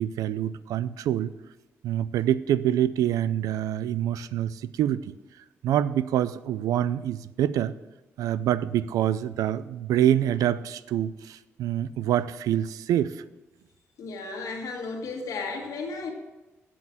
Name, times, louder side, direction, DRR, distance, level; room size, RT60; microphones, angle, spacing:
voice 1, 0.0-1.3 1.8-5.0 5.6-7.7 8.2-13.1, right 11 dB, 85° right, 16 dB, 0.4 m, -26 dB
voice 2, 14.0-16.1, left 3 dB, 75° left, 2 dB, 1.5 m, -34 dB
7.8 x 7.7 x 7.3 m, 1.1 s
supercardioid pair, 55°, 6 cm